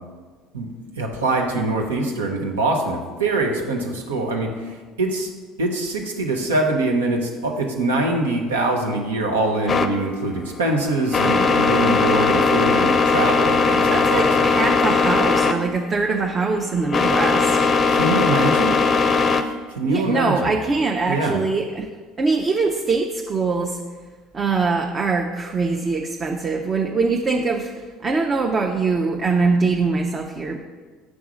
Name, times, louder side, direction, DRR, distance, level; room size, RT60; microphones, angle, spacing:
voice 1, 1.0-4.5 5.0-5.3 5.6-14.5 17.9-18.8 19.8-20.5 21.1-21.4, right 2 dB, 90° right, 2 dB, 0.9 m, -23 dB
sound 1, 9.7-19.4, left 4 dB, 35° left, 0.5 m, -19 dB
voice 2, 13.9-17.6 19.8-21.9 22.2-23.8 24.3-27.7 28.0-30.6, right 4 dB, 35° right, 2 dB, 0.6 m, -22 dB
6.2 x 3.6 x 6.1 m, 1.4 s
hypercardioid pair, 70°, 0 cm